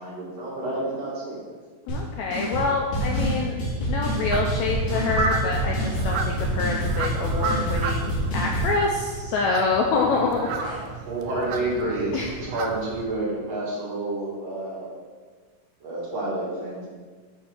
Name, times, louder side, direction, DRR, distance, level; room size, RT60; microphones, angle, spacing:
voice 1, 0.0-1.4 10.6-14.9 15.8-16.9, right 2 dB, 55° right, -4 dB, 2.5 m, -29 dB
voice 2, 1.9-3.6 3.9-10.7 12.1-12.3, left 3 dB, 85° left, 0 dB, 1.6 m, -26 dB
sound 1, 1.9-2.0 2.3-2.7 2.9-8.7, right 1 dB, 65° left, 3.6 m, -26 dB
sound 2, 4.3-13.1, right 5 dB, 80° right, 1.6 m, -33 dB
7.0 x 4.3 x 6.3 m, 1.5 s
omnidirectional pair, 3.9 m